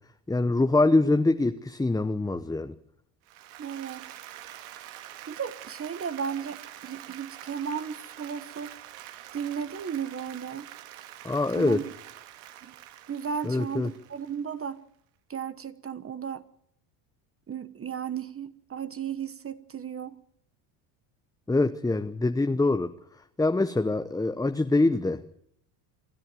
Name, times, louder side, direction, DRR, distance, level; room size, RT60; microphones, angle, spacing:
voice 1, 0.3-2.7 11.2-11.8 13.4-13.9 21.5-22.9 23.4-25.2, left 2 dB, 10° left, 9 dB, 0.9 m, -24 dB
Applause, 3.3-14.6, right 13 dB, 80° right, 2.2 m, -46 dB
voice 2, 3.6-4.1 5.3-8.7 9.3-10.7 11.6-11.8 12.6-12.7 13.1-14.8 15.3-16.4 17.5-20.1, right 7 dB, 30° right, 12 dB, 1.2 m, -35 dB
27.5 x 11.5 x 9.2 m, 0.70 s
supercardioid pair, 100°, 47 cm